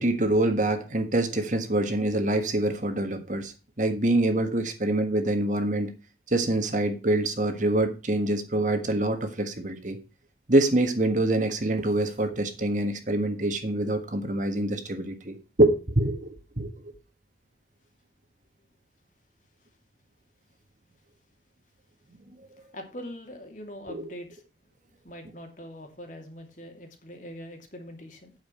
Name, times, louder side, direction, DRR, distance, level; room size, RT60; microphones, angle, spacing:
voice 1, 0.0-5.9 6.3-10.0 10.5-16.9 23.9-24.1, right 1 dB, 45° right, 1.6 m, -25 dB
voice 2, 22.6-24.4 25.0-28.3, equal, 45° left, 2.7 m, -42 dB
8.8 x 7.2 x 5.5 m
head